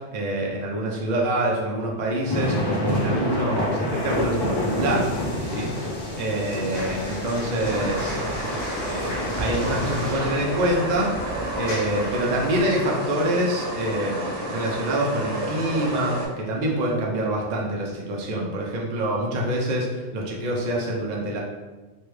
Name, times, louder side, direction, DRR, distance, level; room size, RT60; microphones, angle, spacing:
voice 1, 0.0-5.1 5.4-5.7 6.2-8.2 8.8-11.1 11.5-21.4, right 1 dB, 55° right, -2 dB, 0.5 m, -26 dB
sound 1, 2.1-10.1, left 1 dB, 35° left, 0.4 m, -28 dB
sound 2, 6.7-12.6, left 1 dB, 70° left, 0.8 m, -35 dB
sound 3, 7.6-16.3, right 1 dB, 80° right, 1.1 m, -31 dB
3.2 x 2.2 x 3.1 m, 1.3 s
omnidirectional pair, 1.2 m